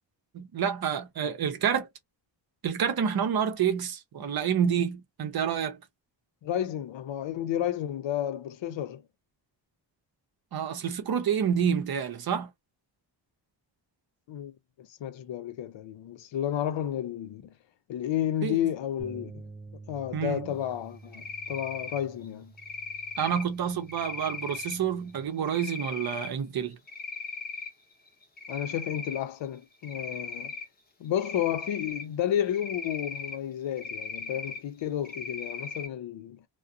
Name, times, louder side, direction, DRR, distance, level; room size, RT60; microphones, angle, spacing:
voice 1, 0.3-1.9 2.6-5.8 10.5-12.5 18.4-18.6 20.1-20.5 23.2-26.8, right 8 dB, 55° right, 0.7 m, -28 dB
voice 2, 6.4-9.0 14.3-17.5 17.9-19.4 19.9-22.5 28.5-30.6 31.0-36.4, left 10 dB, 80° left, 0.6 m, -32 dB
sound 1, 19.0-25.2, right 3 dB, 10° right, 0.3 m, -49 dB
Cricket, 21.1-22.0 22.6-23.4 23.9-24.7 25.5-26.3 26.7-27.7 28.1-29.2 29.8-30.6 31.2-32.0 32.5-33.4 33.8-34.6 35.0-35.9, left 4 dB, 20° left, 0.7 m, -38 dB
2.4 x 2.2 x 2.6 m
wide cardioid pair, 150°, 44 cm